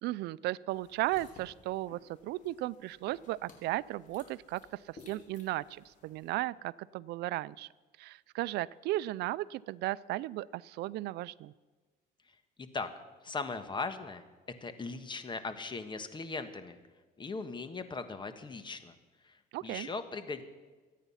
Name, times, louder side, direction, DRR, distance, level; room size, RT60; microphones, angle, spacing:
voice 1, 0.0-7.7 8.0-11.5 19.5-19.9, right 17 dB, 80° right, 20 dB, 0.5 m, -35 dB
sound 1, 0.7-6.3, left 3 dB, 50° left, 3.6 m, -58 dB
voice 2, 12.6-12.9 13.2-14.2 14.6-16.8 17.2-18.9 19.2-20.4, left 4 dB, 25° left, 10 dB, 1.4 m, -39 dB
24.0 x 9.3 x 5.7 m, 1.3 s
cardioid pair, 110°, 17 cm